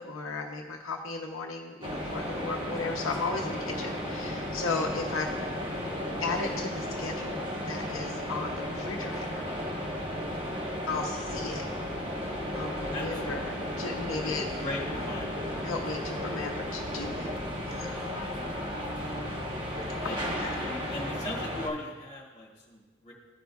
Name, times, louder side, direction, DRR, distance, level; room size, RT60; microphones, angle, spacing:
voice 1, 0.0-5.3 6.2-9.5 10.9-11.6 12.4-14.5 15.6-17.3 17.7-18.0 20.0-20.5, left 3 dB, 85° left, 0 dB, 0.7 m, -35 dB
sound 1, 1.8-21.7, equal, 25° right, 1.0 m, -34 dB
voice 2, 12.9-13.6 14.2-15.4 20.0-23.1, left 2 dB, 35° left, -2 dB, 1.9 m, -39 dB
14.0 x 5.1 x 2.3 m, 1.2 s
head